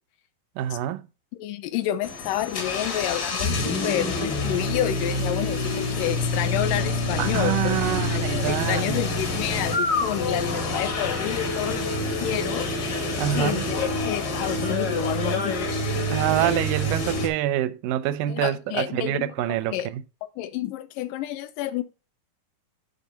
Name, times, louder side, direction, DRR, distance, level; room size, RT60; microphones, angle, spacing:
voice 1, 0.6-1.1 7.2-9.1 13.2-13.6 16.1-20.0, right 13 dB, 90° right, 2.2 m, -26 dB
voice 2, 1.4-7.8 8.1-12.7 13.4-15.7 18.3-19.9 20.4-21.8, left 12 dB, 90° left, 2.3 m, -29 dB
sound 1, 2.0-17.3, left 2 dB, 65° left, 0.9 m, -27 dB
8.2 x 3.5 x 5.3 m
omnidirectional pair, 3.7 m